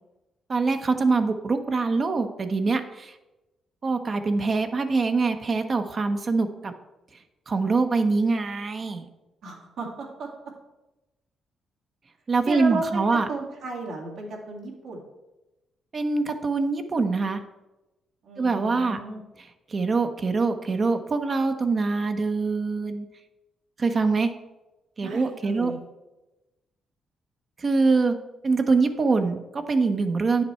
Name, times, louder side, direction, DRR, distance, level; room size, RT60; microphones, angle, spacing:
voice 1, 0.5-3.1 3.8-6.7 7.5-9.0 12.3-13.3 15.9-17.4 18.4-19.0 19.7-23.1 23.8-24.3 25.0-25.7 27.6-28.2 28.4-30.4, right 4 dB, 45° right, 7 dB, 0.9 m, -24 dB
voice 2, 9.4-10.3 12.5-15.0 18.2-19.2 25.0-25.8, right 3 dB, 75° right, -1 dB, 2.3 m, -34 dB
9.3 x 5.9 x 4.4 m, 1.0 s
supercardioid pair, 65°, 0 cm